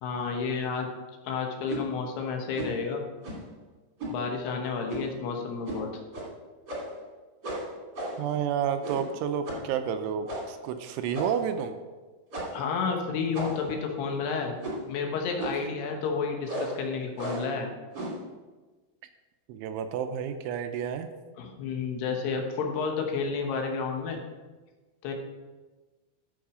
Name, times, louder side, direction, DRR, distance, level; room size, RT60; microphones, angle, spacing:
voice 1, 0.0-0.9 1.2-3.0 4.1-5.9 12.5-14.6 14.9-17.7 21.4-24.2 25.0-25.1, left 5 dB, 70° left, 2 dB, 2.8 m, -31 dB
sound 1, 1.7-1.9 2.5-2.8 3.2-3.5 4.0-4.2 4.9-5.2 5.6-5.8 6.1-6.3 6.7-7.0 7.4-8.3 8.8-9.1 9.5-9.7 10.3-10.6 11.1-11.5 12.3-12.7 13.3-13.8 14.6-14.9 15.4-15.7 16.4-16.8 17.2-17.5 17.9-18.2, right 1 dB, 30° right, 1.9 m, -35 dB
voice 2, 8.2-11.8 19.5-21.1, right 8 dB, 80° right, 8 dB, 2.9 m, -30 dB
14.0 x 6.4 x 5.0 m, 1.3 s
omnidirectional pair, 5.8 m